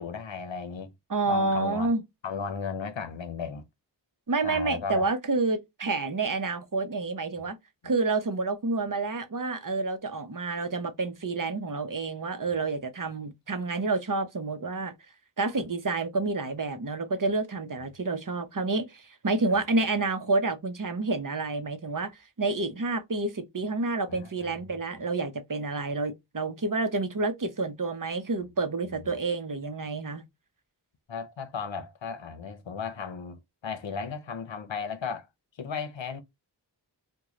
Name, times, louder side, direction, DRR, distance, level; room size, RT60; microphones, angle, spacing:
voice 1, 0.0-0.9 1.3-1.9 2.2-3.7 4.4-5.1 12.5-12.6 15.5-15.6 24.1-24.3 28.8-29.1 31.1-35.3 35.6-36.2, left 6 dB, 85° left, 0.7 m, -35 dB
voice 2, 1.1-2.0 4.3-7.6 7.8-14.9 15.4-30.2, right 3 dB, 45° right, 0.7 m, -29 dB
3.1 x 2.2 x 3.6 m
wide cardioid pair, 40°, 44 cm